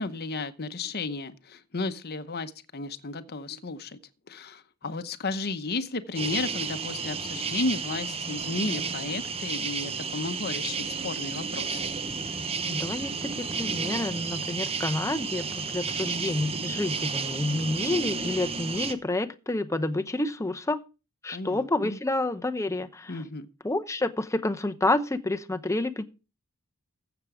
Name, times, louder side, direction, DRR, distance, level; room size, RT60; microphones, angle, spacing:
voice 1, 0.0-4.0 4.3-11.9 21.3-22.0 23.1-23.5, left 3 dB, 45° left, 0.9 m, -33 dB
sound 1, 6.1-18.9, right 5 dB, 25° right, 0.9 m, -32 dB
voice 2, 12.6-20.8 21.2-23.2 23.6-26.0, left 2 dB, 15° left, 0.7 m, -29 dB
15.0 x 7.1 x 4.9 m
head